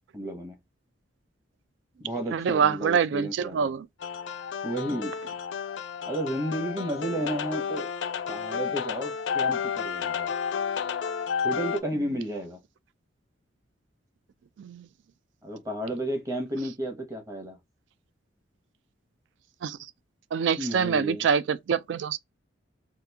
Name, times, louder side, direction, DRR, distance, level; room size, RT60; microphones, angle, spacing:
voice 1, 0.1-0.6 2.0-3.7 4.6-5.1 6.1-7.9 8.3-10.3 11.4-12.6 15.4-17.6 20.6-21.3, right 1 dB, 15° right, 0.9 m, -32 dB
voice 2, 2.3-3.9 14.6-14.8 19.6-19.8 20.3-22.2, right 6 dB, 70° right, 0.3 m, -25 dB
sound 1, 4.0-11.8, left 7 dB, 70° left, 0.4 m, -31 dB
2.9 x 2.4 x 3.4 m
head